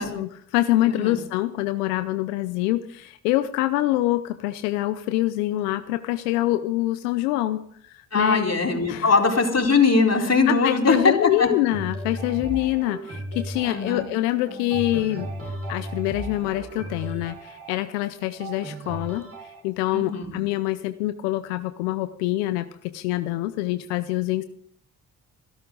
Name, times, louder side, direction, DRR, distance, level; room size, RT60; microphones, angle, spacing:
voice 1, 0.0-8.4 8.9-9.1 10.5-15.3 15.7-19.2 19.6-24.4, left 16 dB, 85° left, 11 dB, 0.7 m, -25 dB
voice 2, 0.8-1.2 8.1-11.5 13.6-14.1 19.9-20.4, left 4 dB, 30° left, 1 dB, 4.2 m, -21 dB
sound 1, 11.7-19.6, right 1 dB, 30° right, 4.8 m, -36 dB
25.5 x 12.0 x 3.9 m, 0.62 s
hypercardioid pair, 45°, 46 cm